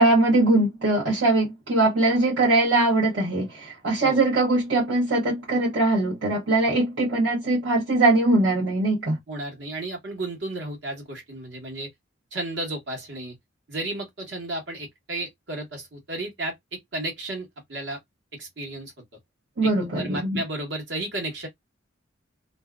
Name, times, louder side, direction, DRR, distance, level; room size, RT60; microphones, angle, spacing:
voice 1, 0.0-9.2 19.6-20.4, right 2 dB, 90° right, 1.0 m, -21 dB
voice 2, 9.3-11.9 12.3-13.4 13.7-18.0 18.3-18.9 19.6-21.5, right 2 dB, 70° right, 1.3 m, -33 dB
2.6 x 2.1 x 2.3 m
head